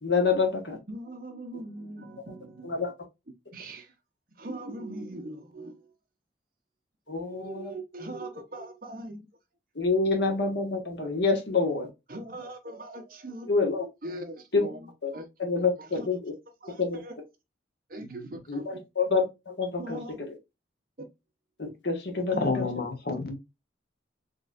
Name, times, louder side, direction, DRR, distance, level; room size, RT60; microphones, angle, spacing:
voice 1, 0.0-0.8 2.6-2.9 7.1-7.7 9.7-11.9 13.5-13.8 14.5-14.7 15.0-15.1 15.4-16.3 16.8-17.0 18.5-20.3 21.6-22.6, left 4 dB, 70° left, 1.3 m, -27 dB
voice 2, 0.9-2.8 3.5-3.9 4.4-5.8 7.2-9.3 12.1-13.5 14.0-14.8 15.1-15.3 15.6-16.1 16.6-17.1 17.9-18.8 19.8-20.2 22.3-22.7, right 1 dB, 50° right, 0.9 m, -40 dB
voice 3, 22.4-23.4, left 3 dB, 55° left, 0.9 m, -29 dB
4.2 x 3.2 x 2.4 m
head